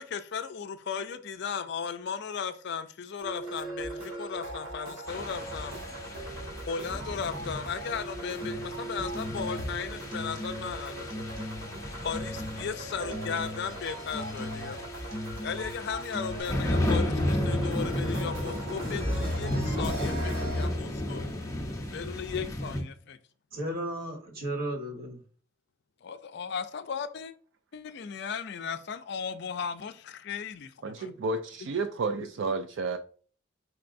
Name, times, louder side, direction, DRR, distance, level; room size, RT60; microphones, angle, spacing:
voice 1, 0.0-5.7 6.7-11.2 12.0-14.8 15.4-21.2 21.9-23.2 26.0-27.3 27.7-31.1, left 6 dB, 55° left, 0.4 m, -36 dB
sound 1, 3.2-20.7, right 1 dB, 85° right, 2.1 m, -38 dB
sound 2, 5.1-22.8, left 1 dB, 15° left, 0.6 m, -34 dB
sound 3, 8.4-8.7 9.1-9.8 10.1-10.8 11.1-11.8 12.1-12.8 13.1-13.8 14.1-14.8 15.1-15.8 16.1-16.4, left 1 dB, 25° right, 1.0 m, -39 dB
voice 2, 23.5-25.2, right 1 dB, 45° right, 1.3 m, -34 dB
voice 3, 30.8-33.0, right 3 dB, 60° right, 0.3 m, -31 dB
4.6 x 4.4 x 2.5 m
head